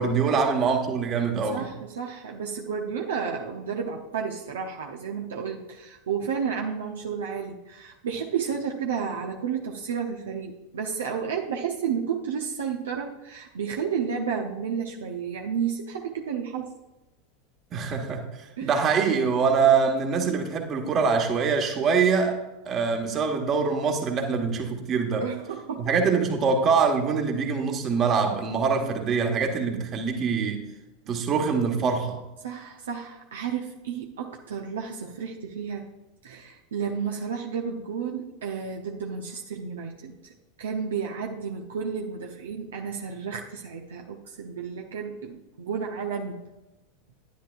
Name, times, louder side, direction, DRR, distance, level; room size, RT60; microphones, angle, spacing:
voice 1, 0.0-1.7 17.7-22.4 22.6-25.3 25.8-30.6 31.1-32.2, right 5 dB, 35° right, 1.5 m, -24 dB
voice 2, 1.5-16.7 18.6-18.7 25.2-25.9 28.7-28.9 32.4-35.9 36.2-40.1 40.6-46.4, right 6 dB, 70° right, 0.8 m, -32 dB
10.5 x 10.0 x 2.5 m
figure-of-eight pair, 85°, 0 cm